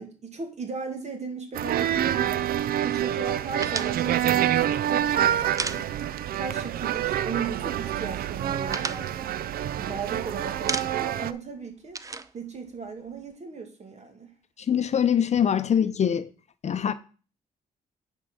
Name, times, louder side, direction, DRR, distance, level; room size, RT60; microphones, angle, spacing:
voice 1, 0.0-2.5 2.8-5.9 6.3-9.2 9.8-12.0 12.3-14.3, right 5 dB, 50° right, 2.3 m, -37 dB
sound 1, 1.5-11.3, right 11 dB, 80° right, 0.5 m, -27 dB
sound 2, 3.6-6.4 6.7-6.8 7.1-7.8 8.2-10.2 10.5-11.2 11.5-13.3, right 3 dB, 20° right, 0.5 m, -35 dB
voice 2, 14.7-16.3 16.6-16.9, left 8 dB, 50° left, 0.6 m, -23 dB
9.5 x 4.6 x 6.2 m
cardioid pair, 90°, 15 cm